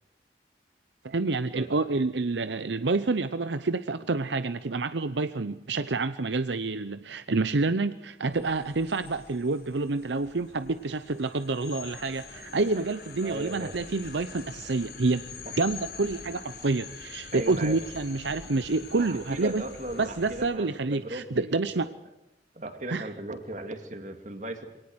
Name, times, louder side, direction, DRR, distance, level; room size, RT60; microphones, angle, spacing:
voice 1, 1.0-15.2 15.6-19.6 20.0-21.9 22.9-23.0, right 3 dB, 80° right, 12 dB, 0.7 m, -28 dB
sound 1, 8.3-20.4, left 5 dB, 60° left, 7.5 m, -45 dB
voice 2, 13.2-13.8 15.4-15.6 17.3-17.8 19.0-21.9 22.5-24.7, right 1 dB, 40° right, 7 dB, 2.4 m, -37 dB
23.0 x 18.5 x 8.0 m, 0.89 s
head